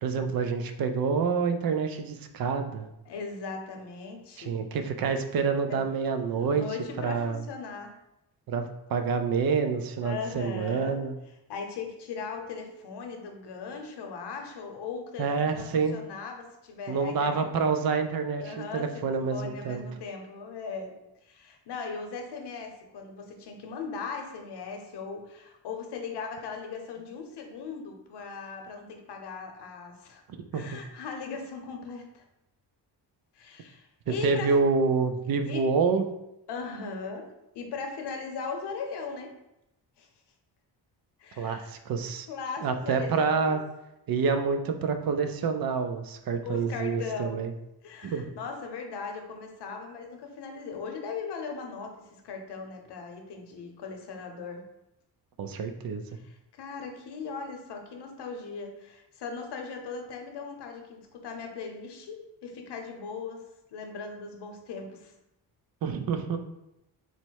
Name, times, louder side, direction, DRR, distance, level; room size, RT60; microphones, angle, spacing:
voice 1, 0.0-2.9 4.4-6.7 7.0-7.4 8.5-11.2 15.2-16.0 16.9-19.8 30.5-30.8 34.1-36.1 41.4-42.3 42.6-43.6 44.1-47.5 48.0-48.3 55.4-56.0 65.8-66.4, right 5 dB, 60° right, 7 dB, 0.5 m, -27 dB
voice 2, 3.1-4.6 5.7-5.8 6.3-7.9 10.0-11.1 11.5-17.5 18.4-19.0 19.3-20.9 21.2-30.2 30.5-32.2 33.3-34.5 35.5-35.6 36.5-37.3 37.5-39.3 40.0-40.1 41.2-41.7 42.3-43.6 46.4-47.4 47.8-51.9 52.2-54.6 56.1-63.4 63.7-65.1, left 5 dB, 75° left, 3 dB, 0.8 m, -38 dB
4.1 x 2.1 x 4.5 m, 0.88 s
cardioid pair, 115°, 40 cm